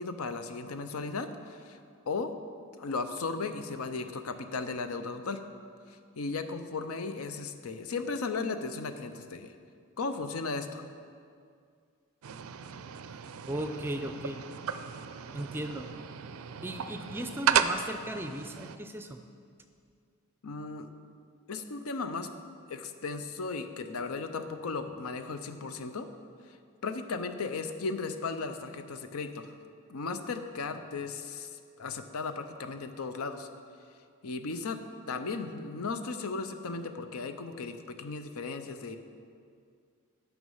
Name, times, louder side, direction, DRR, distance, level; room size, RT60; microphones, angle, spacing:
voice 1, 0.0-1.8 2.1-2.3 2.8-5.4 6.2-9.5 10.0-10.8 20.4-20.9 21.5-22.3 22.7-26.1 26.8-29.5 29.9-33.5 34.2-34.8 35.1-39.0, left 4 dB, 90° left, 9 dB, 0.6 m, -36 dB
sound 1, 12.2-18.8, right 8 dB, 85° right, 0.4 m, -34 dB
voice 2, 13.5-14.4 15.3-15.9 16.6-19.2, right 1 dB, 10° right, 6 dB, 0.4 m, -36 dB
9.3 x 6.1 x 5.5 m, 2.2 s
head